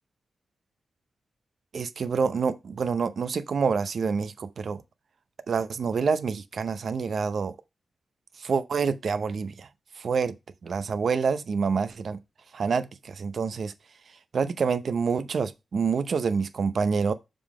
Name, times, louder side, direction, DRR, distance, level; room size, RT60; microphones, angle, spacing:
voice 1, 1.7-4.8 5.5-7.5 8.4-9.7 10.0-10.3 10.6-12.2 12.5-13.7 14.3-17.1, right 5 dB, 65° right, 0.7 m, -27 dB
6.9 x 3.8 x 4.8 m
wide cardioid pair, 120°, 0 cm